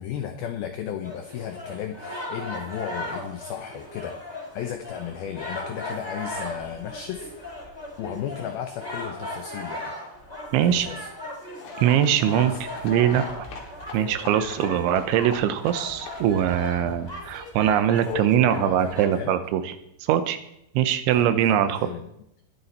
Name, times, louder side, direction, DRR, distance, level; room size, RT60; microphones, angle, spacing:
voice 1, 0.0-4.2 4.5-7.3 8.0-9.9 10.7-11.1 12.4-12.6 14.6-14.8 16.8-17.0 18.1-19.4 21.1-22.1, left 9 dB, 85° left, 6 dB, 2.1 m, -34 dB
sound 1, 1.0-19.1, left 1 dB, 5° left, 3.0 m, -37 dB
voice 2, 10.5-10.9 11.8-12.5 12.8-13.2 13.9-19.7 20.0-20.4 20.7-21.9, right 10 dB, 80° right, 10 dB, 3.2 m, -22 dB
sound 2, 11.6-16.5, left 5 dB, 70° left, 4.3 m, -43 dB
21.0 x 10.0 x 4.2 m, 0.77 s
omnidirectional pair, 5.5 m